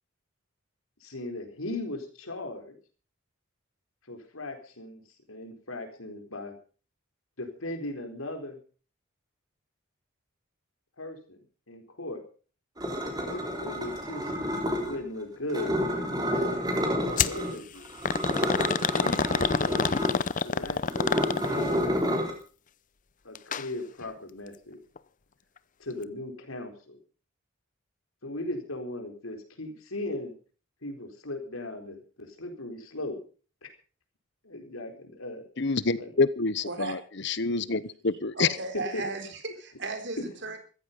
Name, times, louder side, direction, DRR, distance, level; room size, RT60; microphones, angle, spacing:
voice 1, 1.0-2.8 4.1-5.0 5.3-6.6 7.4-8.6 11.0-12.2 13.2-14.3 14.7-17.9 18.8-19.9 20.4-22.0 23.2-24.8 25.8-27.0 28.2-30.3 30.8-33.2 33.6-33.7 34.4-35.4 36.0-36.1 38.9-39.0 40.2-40.3, left 2 dB, 90° left, 4.3 m, -38 dB
sound 1, 12.8-15.0 15.5-17.5 17.8-22.3, equal, 20° right, 3.5 m, -30 dB
sound 2, 17.2-17.4 18.0-21.7 23.3-23.7 24.0-24.1 25.0-25.1, left 5 dB, 40° left, 0.6 m, -27 dB
voice 2, 35.6-37.0 37.2-38.5, left 4 dB, 55° left, 1.0 m, -27 dB
voice 3, 38.3-40.6, right 3 dB, 55° right, 4.1 m, -35 dB
15.0 x 14.5 x 5.5 m
head